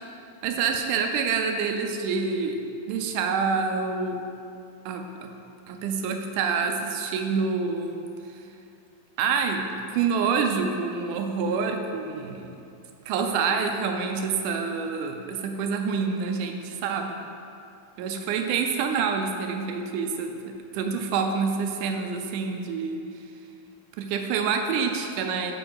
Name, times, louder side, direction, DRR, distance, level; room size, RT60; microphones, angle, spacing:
voice 1, 0.4-2.6 2.9-4.2 4.9-5.3 5.7-8.1 9.2-12.6 13.1-17.2 18.0-20.3 20.7-23.0 24.0-25.5, right 5 dB, 80° right, 4 dB, 2.0 m, -27 dB
7.9 x 5.3 x 4.7 m, 2.6 s
omnidirectional pair, 3.8 m